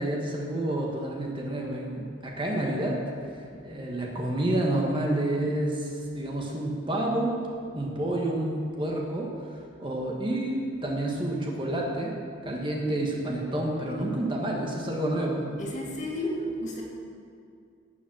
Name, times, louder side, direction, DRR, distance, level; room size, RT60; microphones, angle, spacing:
voice 1, 0.0-7.4 7.7-9.3 9.8-12.1 12.4-15.5, right 1 dB, 25° right, -2 dB, 1.5 m, -29 dB
voice 2, 15.6-16.8, equal, 35° left, -2 dB, 2.3 m, -32 dB
17.0 x 7.3 x 6.2 m, 2.4 s
head